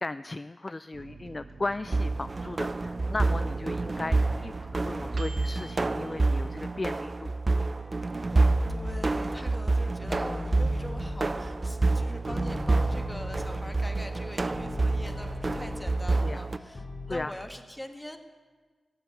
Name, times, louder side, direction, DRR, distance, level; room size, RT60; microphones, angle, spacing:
voice 1, 0.0-7.3 16.2-16.4 17.1-17.3, left 2 dB, 35° left, 14 dB, 0.3 m, -36 dB
Microwave oven, 0.9-7.0 7.4-7.5 7.8-8.4, right 3 dB, 75° right, 1.2 m, -47 dB
sound 1, 1.9-16.6, right 3 dB, 40° right, 0.5 m, -28 dB
sound 2, 3.9-5.1 5.5-7.4 7.8-9.7 10.0-17.3, left 2 dB, 55° left, 2.4 m, -41 dB
voice 2, 3.9-4.3 8.2-18.2, left 1 dB, 10° left, 6 dB, 1.6 m, -43 dB
17.0 x 7.6 x 8.1 m, 1.4 s
cardioid pair, 40°, 0 cm